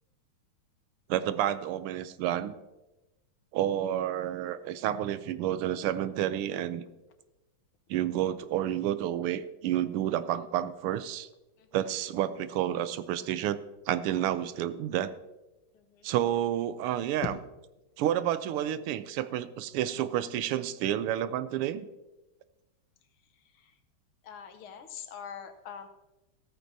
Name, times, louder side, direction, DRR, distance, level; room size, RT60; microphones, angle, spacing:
voice 1, 1.1-2.6 3.5-6.8 7.9-11.3 11.7-13.6 13.9-15.1 16.0-17.3 18.0-21.9, right 11 dB, 90° right, 13 dB, 1.6 m, -30 dB
voice 2, 15.7-16.1 24.2-25.9, left 7 dB, 75° left, 7 dB, 1.8 m, -44 dB
14.5 x 13.5 x 2.7 m, 1.0 s
omnidirectional pair, 2.4 m